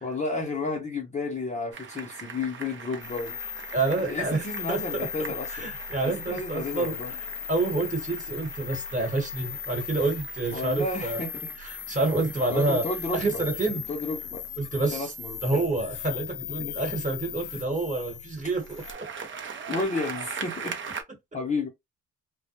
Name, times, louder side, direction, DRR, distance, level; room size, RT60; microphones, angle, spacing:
voice 1, 0.0-3.4 4.0-5.7 6.0-7.1 10.5-11.5 12.5-13.4 13.9-14.4 14.9-15.6 16.6-16.8 19.7-20.8 21.3-21.7, left 3 dB, 25° left, 0.7 m, -32 dB
sound 1, 1.7-15.8 18.4-21.0, right 6 dB, 40° right, 0.6 m, -42 dB
sound 2, 3.0-18.9, left 8 dB, 80° left, 0.6 m, -38 dB
voice 2, 3.7-4.4 4.7-5.1 5.5-6.9 7.5-11.2 11.6-12.8 13.1-13.8 14.6-15.1 15.4-19.3, right 2 dB, 25° right, 1.2 m, -28 dB
2.2 x 2.1 x 2.8 m
cardioid pair, 90°, 30 cm